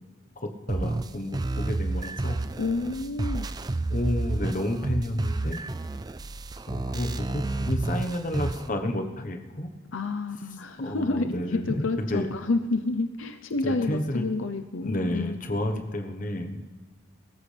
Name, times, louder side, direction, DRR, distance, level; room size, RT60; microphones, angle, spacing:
voice 1, 0.4-2.4 3.9-5.7 6.7-9.7 10.8-12.3 13.6-14.3 14.8-16.6, left 1 dB, 40° left, 6 dB, 1.1 m, -30 dB
sound 1, 0.7-8.7, right 2 dB, 20° right, 0.3 m, -31 dB
voice 2, 2.6-3.5 9.9-15.4, left 3 dB, 75° left, 7 dB, 0.7 m, -29 dB
21.5 x 13.5 x 3.4 m, 1.4 s
head